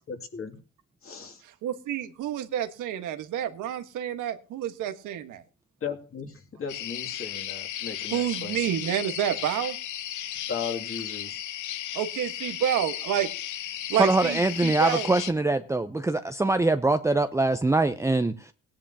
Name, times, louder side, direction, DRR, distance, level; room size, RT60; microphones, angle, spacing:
voice 1, 0.1-0.6 1.0-1.4 5.8-8.6 10.5-11.4, left 6 dB, 45° left, 4 dB, 2.6 m, -36 dB
voice 2, 1.6-5.4 8.1-9.8 11.9-13.3 13.9-15.1, right 10 dB, 90° right, 7 dB, 1.4 m, -29 dB
sound 1, 6.7-15.3, left 11 dB, 80° left, 0.9 m, -35 dB
voice 3, 14.0-18.5, right 2 dB, 10° right, 8 dB, 0.6 m, -23 dB
17.5 x 10.5 x 2.8 m, 0.35 s
cardioid pair, 90°, 30 cm